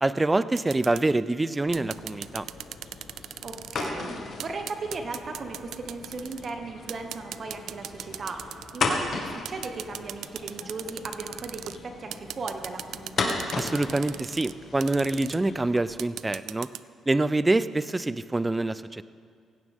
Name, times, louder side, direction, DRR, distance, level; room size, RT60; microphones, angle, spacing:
voice 1, 0.0-2.5 13.6-16.7 17.1-19.0, right 2 dB, 15° right, 15 dB, 0.5 m, -26 dB
sound 1, 0.6-1.0 1.7-3.9 4.4-6.5 6.9-8.9 9.5-11.8 12.1-14.5 14.8-15.4 16.0-16.8, right 11 dB, 75° right, 0.4 m, -38 dB
sound 2, 1.6-15.8, left 4 dB, 55° left, 1.9 m, -36 dB
voice 2, 3.4-8.5 8.7-13.4, right 3 dB, 45° right, 4 dB, 1.2 m, -37 dB
17.5 x 16.0 x 3.7 m, 2.1 s
cardioid pair, 90°, 0 cm